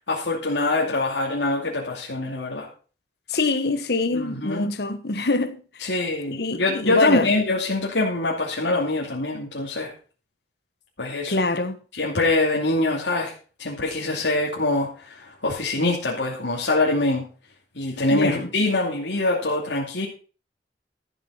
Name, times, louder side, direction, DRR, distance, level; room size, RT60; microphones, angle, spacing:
voice 1, 0.1-2.7 4.1-4.7 5.8-9.9 11.0-11.4 12.0-13.3 13.6-17.3 17.7-20.1, left 2 dB, 90° left, 2.7 m, -24 dB
voice 2, 3.3-5.9 6.3-7.3 11.3-11.8 18.1-18.5, left 3 dB, 65° left, 1.2 m, -25 dB
13.5 x 7.2 x 5.6 m
head